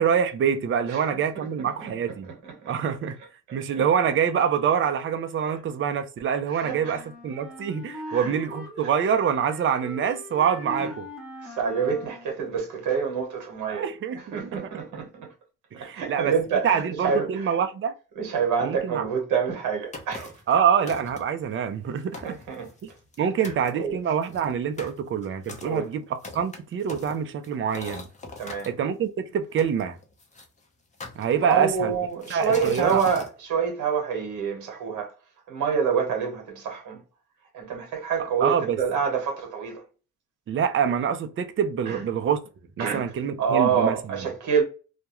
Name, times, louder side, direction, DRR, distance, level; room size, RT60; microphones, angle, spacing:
voice 1, 0.0-2.3 2.7-3.2 3.5-11.1 13.7-14.6 15.7-16.3 16.6-17.9 18.6-19.0 20.5-22.4 23.2-26.0 26.3-28.1 28.7-30.0 31.2-32.0 32.3-33.0 38.4-38.8 40.5-42.4 42.8-44.2, right 7 dB, 45° right, 0.5 m, -25 dB
voice 2, 1.8-2.7 3.5-3.8 6.5-7.0 8.1-8.3 11.4-13.9 14.3-15.3 15.7-17.5 18.1-20.3 22.2-22.7 23.8-24.0 25.6-25.9 28.4-28.7 31.4-35.1 35.5-37.0 37.5-39.8 41.9-42.0 42.8-43.1 43.4-44.6, right 6 dB, 85° right, 1.0 m, -27 dB
sound 1, 6.6-12.4, left 1 dB, ahead, 0.9 m, -41 dB
sound 2, 19.9-20.5 20.9-21.4 21.9-22.0 22.1-23.2 23.4-23.7 24.2-28.7 29.6-30.5 31.0-31.7 32.2-33.3, left 3 dB, 25° left, 0.7 m, -40 dB
2.3 x 2.2 x 2.9 m
cardioid pair, 90°, 30 cm